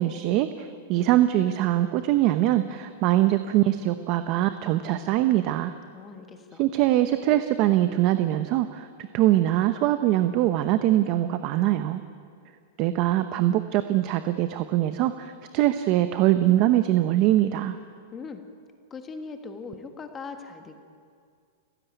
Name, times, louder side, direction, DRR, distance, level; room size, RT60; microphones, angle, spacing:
voice 1, 0.0-5.7 6.6-8.9 9.1-12.0 12.8-17.8, right 14 dB, 30° right, 10 dB, 0.8 m, -23 dB
voice 2, 5.9-6.6 18.1-18.4 18.9-20.8, left 4 dB, 15° left, 6 dB, 1.5 m, -40 dB
30.0 x 16.0 x 9.2 m, 2.3 s
supercardioid pair, 170°, 0 cm